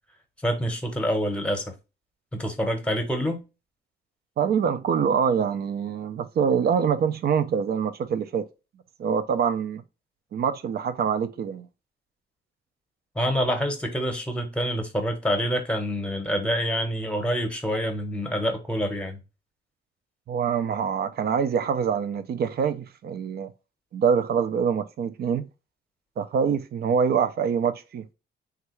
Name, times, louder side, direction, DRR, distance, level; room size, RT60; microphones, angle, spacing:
voice 1, 0.4-1.7 2.3-3.4 13.1-19.2, equal, 5° left, 0.9 m, -26 dB
voice 2, 4.4-8.5 9.0-9.8 10.3-11.7 20.3-23.5 23.9-25.4 26.2-28.0, right 7 dB, 55° right, 0.5 m, -25 dB
3.2 x 2.4 x 3.0 m
cardioid pair, 90°, 20 cm